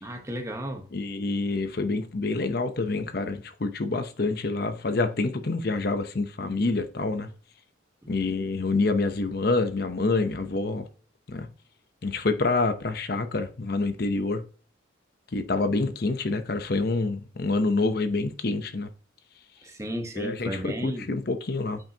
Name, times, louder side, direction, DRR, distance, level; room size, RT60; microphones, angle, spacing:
voice 1, 0.0-0.9 19.6-21.1, equal, 15° right, 1.0 m, -34 dB
voice 2, 0.9-7.3 8.1-10.9 11.3-11.5 12.0-14.4 15.3-18.9 20.2-21.8, left 3 dB, 50° left, 0.7 m, -27 dB
8.8 x 5.4 x 2.8 m
head